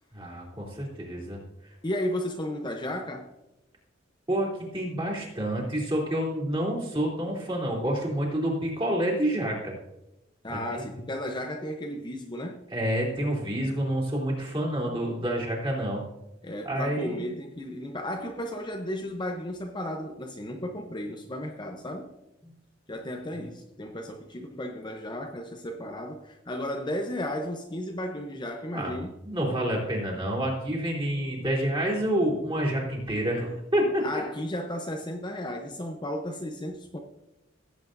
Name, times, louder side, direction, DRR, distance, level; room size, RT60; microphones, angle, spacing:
voice 1, 0.1-1.4 4.3-9.7 10.5-10.8 12.7-16.0 16.6-17.2 28.7-28.9 29.2-34.2, right 1 dB, 25° right, 3.3 m, -28 dB
voice 2, 1.8-3.3 10.4-12.7 16.4-22.1 22.9-29.1 34.0-37.0, left 1 dB, 25° left, 0.8 m, -34 dB
17.5 x 8.1 x 2.7 m
head